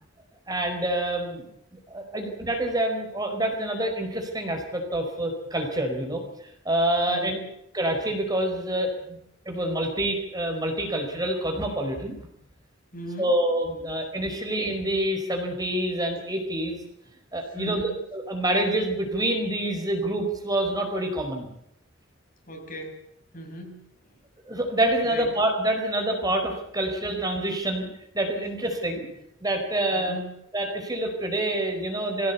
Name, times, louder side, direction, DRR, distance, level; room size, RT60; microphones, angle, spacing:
voice 1, 0.5-1.5 1.9-7.4 7.7-9.2 9.4-12.3 13.2-16.8 17.3-17.8 18.1-21.5 24.5-27.9 28.1-29.1 29.4-30.1 30.5-32.3, right 1 dB, 20° right, 3 dB, 4.7 m, -27 dB
voice 2, 7.1-7.5 12.9-13.4 17.4-18.0 22.5-23.1 23.3-24.2 25.0-25.3 29.0-29.2 29.9-30.4, equal, 45° left, 4 dB, 5.5 m, -38 dB
24.5 x 16.5 x 8.4 m, 0.78 s
head